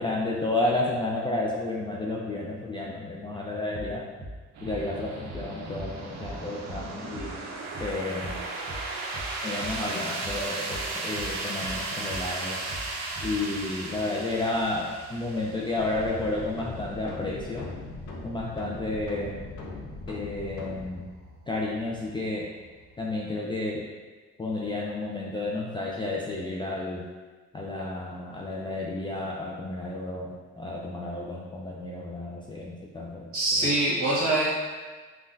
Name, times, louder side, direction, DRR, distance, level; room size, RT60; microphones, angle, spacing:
voice 1, 0.0-4.0 4.6-7.4 7.8-8.4 9.4-12.6 13.2-17.7 18.2-19.4 20.1-21.0 21.5-22.5 23.0-23.8 24.4-27.0 27.5-33.3, left 2 dB, 15° left, -4 dB, 0.3 m, -31 dB
sound 1, 3.7-3.9 4.2-4.4 4.6-4.8 5.3-5.5 5.7-5.9 6.2-6.4 6.7-6.9 7.1-7.3 7.7-7.9 8.2-8.4 8.7-8.9 9.1-9.3 9.6-9.8 10.2-10.4 10.7-10.9 11.1-11.3 11.6-11.8 12.1-12.3 12.7-12.9 13.2-13.4, right 1 dB, 35° left, 1.2 m, -39 dB
sound 2, 4.5-23.2, right 3 dB, 65° right, 0.5 m, -37 dB
sound 3, 15.8-20.8, left 2 dB, 80° left, 0.6 m, -39 dB
voice 2, 33.3-34.6, right 2 dB, 45° right, -6 dB, 1.2 m, -24 dB
3.7 x 2.3 x 2.6 m, 1.3 s
cardioid pair, 90°, 30 cm